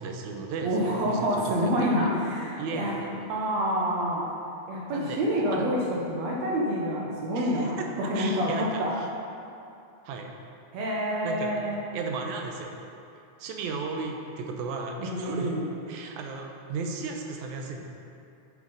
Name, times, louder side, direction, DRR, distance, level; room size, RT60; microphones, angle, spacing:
voice 1, 0.0-1.9 2.6-3.2 4.9-5.2 5.5-5.7 7.4-7.9 8.1-9.1 10.1-10.3 11.2-11.6 11.9-12.8 13.4-15.6 15.9-17.9, right 4 dB, 85° right, 2 dB, 2.1 m, -35 dB
voice 2, 0.6-3.0 3.3-4.3 4.7-8.9 10.7-11.8 15.0-15.7, equal, 70° right, -3 dB, 1.9 m, -27 dB
9.2 x 6.1 x 3.8 m, 2.6 s
omnidirectional pair, 3.3 m